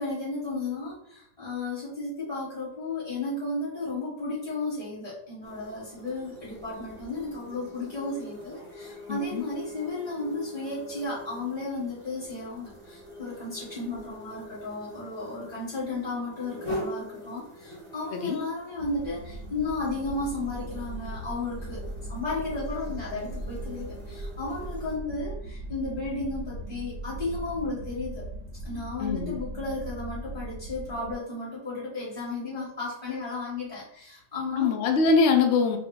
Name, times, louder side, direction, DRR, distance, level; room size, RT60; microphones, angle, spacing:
voice 1, 0.0-21.8 22.1-28.2 28.6-34.8, left 2 dB, 25° left, -9 dB, 1.1 m, -34 dB
sound 1, 5.4-25.0, equal, 25° right, 0.6 m, -44 dB
voice 2, 9.1-9.4 18.1-18.4 29.0-29.4 34.5-35.8, left 4 dB, 85° left, 3 dB, 0.6 m, -23 dB
sound 2, 18.8-31.1, right 1 dB, 70° right, 0.9 m, -39 dB
2.8 x 2.1 x 3.6 m, 0.71 s
omnidirectional pair, 1.8 m